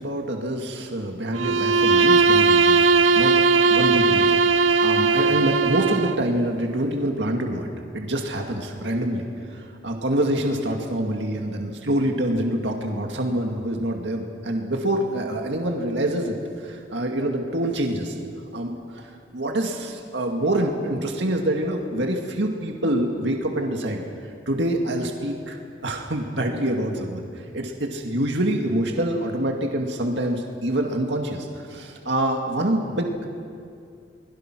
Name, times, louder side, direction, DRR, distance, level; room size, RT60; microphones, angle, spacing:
voice 1, 0.0-2.9 3.1-3.4 3.7-18.2 18.5-19.0 19.3-24.0 24.5-27.3 27.5-33.4, right 1 dB, 65° right, 2 dB, 2.2 m, -26 dB
Bowed string instrument, 1.3-6.3, right 4 dB, 90° right, 0.7 m, -18 dB
28.5 x 21.5 x 6.2 m, 2.4 s
head